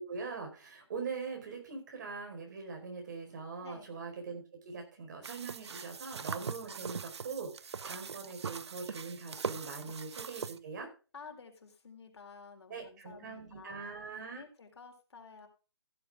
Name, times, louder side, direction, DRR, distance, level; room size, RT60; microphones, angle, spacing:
voice 1, 0.0-10.9 12.7-14.4, right 4 dB, 40° right, 3 dB, 4.7 m, -42 dB
voice 2, 3.6-4.0 9.8-9.9 11.1-13.9 14.3-15.5, left 5 dB, 70° left, 3 dB, 4.1 m, -52 dB
sound 1, 5.2-10.6, right 6 dB, 75° right, 0.8 m, -41 dB
15.0 x 8.0 x 3.6 m, 0.34 s
hypercardioid pair, 165°, 14 cm